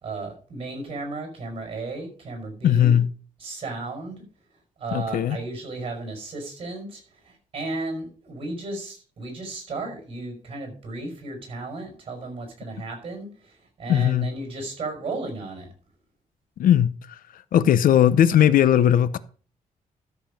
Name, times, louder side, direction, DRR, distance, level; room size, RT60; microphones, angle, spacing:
voice 1, 0.0-3.0 3.4-4.2 4.8-15.7, right 3 dB, 40° right, 5.5 m, -34 dB
voice 2, 2.6-3.1 4.9-5.4 13.9-14.3 16.6-16.9 17.5-19.2, left 10 dB, 80° left, 0.7 m, -18 dB
13.0 x 6.9 x 5.2 m
wide cardioid pair, 175°, 14 cm